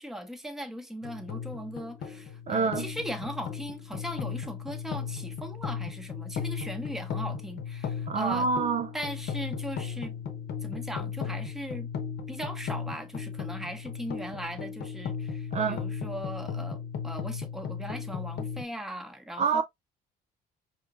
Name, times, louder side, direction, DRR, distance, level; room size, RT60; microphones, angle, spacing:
voice 1, 0.0-8.5 8.9-10.1 10.6-11.9 12.3-19.6, equal, ahead, 0.8 m, -39 dB
sound 1, 1.0-18.6, left 7 dB, 70° left, 0.9 m, -36 dB
voice 2, 2.5-2.9 8.1-8.9 15.5-15.8 19.4-19.6, right 5 dB, 40° right, 0.4 m, -26 dB
4.8 x 2.9 x 2.4 m
cardioid pair, 110°, 17 cm